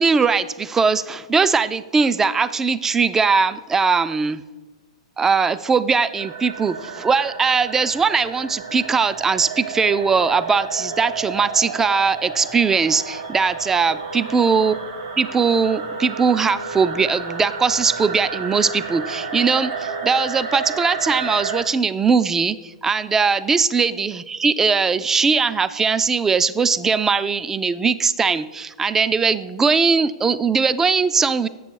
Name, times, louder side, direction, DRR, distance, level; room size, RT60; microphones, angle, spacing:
voice 1, 0.0-4.4 5.2-14.8 15.2-31.5, right 5 dB, 15° right, 14 dB, 0.3 m, -20 dB
sound 1, 6.2-21.6, right 5 dB, 65° right, 1.4 m, -31 dB
8.5 x 6.7 x 4.5 m, 1.2 s
hypercardioid pair, 115°, 3 cm